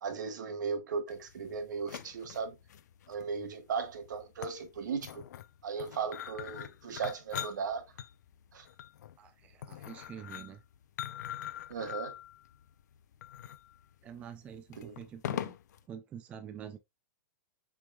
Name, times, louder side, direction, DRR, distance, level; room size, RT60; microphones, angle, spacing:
voice 1, 0.0-2.6 3.1-5.2 5.6-7.9 8.5-8.7 11.7-12.2 14.8-14.9, right 5 dB, 80° right, 1.3 m, -37 dB
sound 1, 1.1-15.8, left 11 dB, 65° left, 0.4 m, -43 dB
voice 2, 9.2-10.6 14.0-15.6 15.9-16.8, right 8 dB, 15° right, 0.3 m, -46 dB
6.0 x 3.6 x 2.2 m
hypercardioid pair, 165°, 10 cm